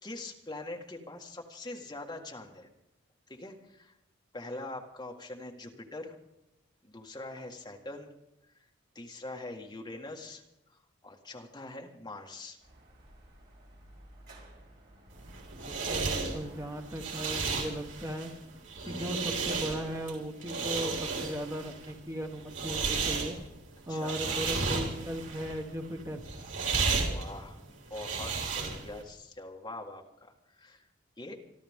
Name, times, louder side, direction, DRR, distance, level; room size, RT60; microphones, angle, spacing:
voice 1, 0.0-2.7 3.3-3.9 4.3-6.1 6.8-8.1 8.5-8.7 8.9-10.4 10.7-12.6 18.8-19.2 23.9-24.2 27.0-30.9 31.2-31.4, left 2 dB, 20° left, 2 dB, 1.7 m, -43 dB
Dog / Motorcycle, 12.6-17.6, right 1 dB, 60° right, 5.3 m, -53 dB
sound 1, 15.2-29.0, right 4 dB, 85° right, 3.9 m, -34 dB
voice 2, 15.7-18.3 18.9-23.4 23.9-26.2, equal, 15° right, 4 dB, 1.2 m, -37 dB
26.5 x 12.5 x 3.6 m, 0.90 s
head